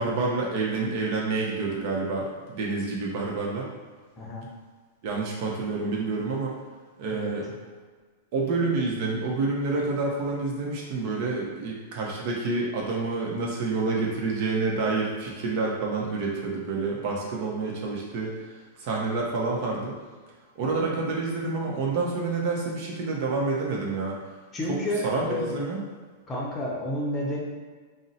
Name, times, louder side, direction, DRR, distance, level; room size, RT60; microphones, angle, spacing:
voice 1, 0.0-3.7 5.0-6.6 7.0-7.5 8.3-18.5 18.8-20.0 20.6-24.2 24.7-24.8 25.0-25.8, right 3 dB, 50° right, -2 dB, 0.7 m, -28 dB
voice 2, 24.5-25.5 26.3-27.4, left 1 dB, 20° left, -3 dB, 0.6 m, -30 dB
2.5 x 2.1 x 4.0 m, 1.5 s
supercardioid pair, 140°, 0 cm